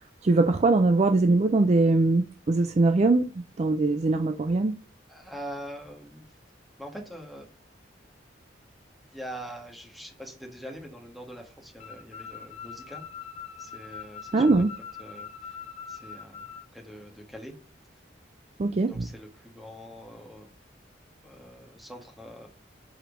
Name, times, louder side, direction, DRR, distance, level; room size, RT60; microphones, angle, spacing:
voice 1, 0.2-4.8 14.3-14.7 18.6-19.1, right 3 dB, 35° right, 0.4 m, -22 dB
voice 2, 5.1-6.3 6.8-7.5 9.1-13.0 13.6-14.6 15.0-15.6 15.9-17.6 18.8-20.5 21.2-22.5, equal, ahead, 1.4 m, -43 dB
sound 1, 11.8-16.6, left 7 dB, 35° left, 0.9 m, -42 dB
5.0 x 4.5 x 5.1 m
head